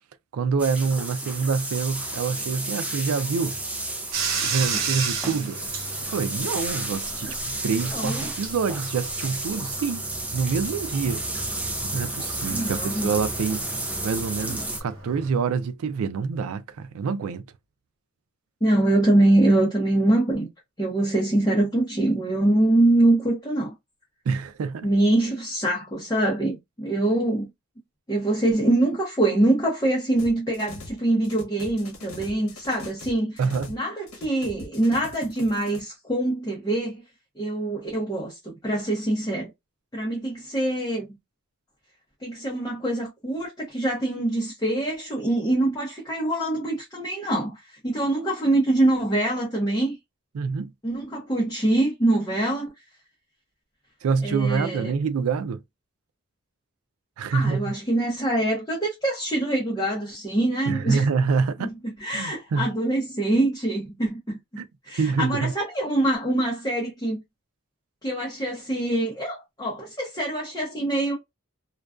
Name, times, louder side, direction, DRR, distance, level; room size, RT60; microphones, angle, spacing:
voice 1, 0.3-3.6 4.4-5.6 6.1-7.3 7.6-10.0 10.3-11.2 11.8-13.7 14.0-17.4 24.3-24.9 33.4-33.7 50.3-50.7 54.0-55.6 57.2-57.7 60.7-61.7 62.1-62.7 64.6-64.7 65.0-65.5, right 5 dB, 90° right, 0.4 m, -26 dB
sound 1, 0.6-14.8, right 2 dB, 5° right, 0.3 m, -32 dB
Bathtub (filling or washing), 4.1-15.3, right 5 dB, 65° right, 0.8 m, -34 dB
voice 2, 7.9-8.3 12.4-13.1 14.4-14.6 18.6-20.5 20.8-23.7 24.8-27.5 28.1-33.4 33.7-37.0 37.4-39.5 39.9-41.1 42.2-50.0 50.8-52.7 54.2-54.9 57.3-61.1 61.6-67.2 68.0-71.1, right 1 dB, 20° left, 0.7 m, -24 dB
sound 2, 30.2-31.0 31.2-33.8 34.1-35.8, left 3 dB, 85° left, 0.9 m, -42 dB
2.4 x 2.2 x 2.3 m
head